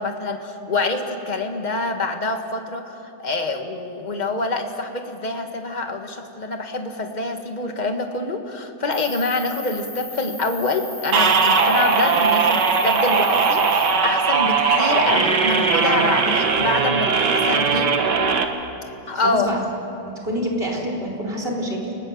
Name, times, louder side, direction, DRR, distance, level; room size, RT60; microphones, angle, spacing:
voice 1, 0.0-18.0 19.1-19.6, left 3 dB, 25° left, 4 dB, 1.7 m, -26 dB
Cricket, 8.9-13.9, left 2 dB, 85° left, 5.7 m, -37 dB
sound 1, 11.1-18.5, right 5 dB, 65° right, 2.0 m, -19 dB
sound 2, 11.7-12.0 12.7-12.8 14.1-16.8, equal, 15° right, 3.2 m, -31 dB
voice 2, 19.1-19.7 20.0-21.9, equal, 30° right, -2 dB, 4.2 m, -27 dB
29.0 x 20.0 x 7.2 m, 2.9 s
omnidirectional pair, 2.1 m